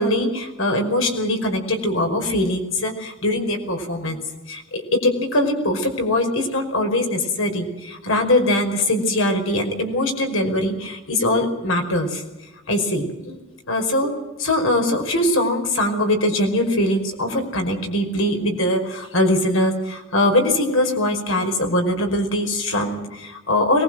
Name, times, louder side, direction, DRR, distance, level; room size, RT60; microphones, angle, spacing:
voice 1, 0.0-4.2 4.5-12.2 12.7-13.4 13.7-14.1 14.4-23.8, left 1 dB, 80° left, 4 dB, 5.2 m, -22 dB
22.5 x 20.0 x 7.7 m, 1.0 s
head